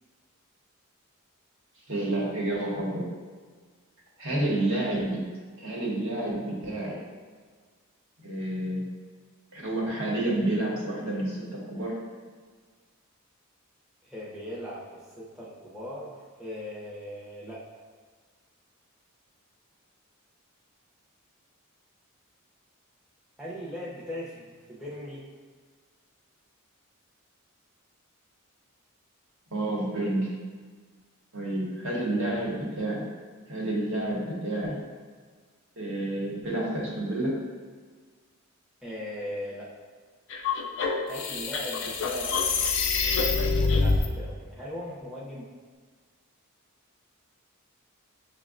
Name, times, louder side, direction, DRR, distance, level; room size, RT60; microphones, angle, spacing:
voice 1, 1.9-3.1 4.2-5.3 5.6-7.0 8.2-8.9 9.5-12.0 29.5-30.3 31.3-33.1 33.5-34.8 35.8-37.4, right 1 dB, 65° right, -4 dB, 0.9 m, -29 dB
voice 2, 4.3-4.6 14.0-17.6 23.4-25.3 31.9-32.3 38.8-39.7 41.0-42.5 43.6-45.5, equal, ahead, -8 dB, 0.5 m, -39 dB
sound 1, 40.3-44.1, left 4 dB, 60° left, 0.4 m, -26 dB
6.1 x 2.1 x 2.4 m, 1.5 s
head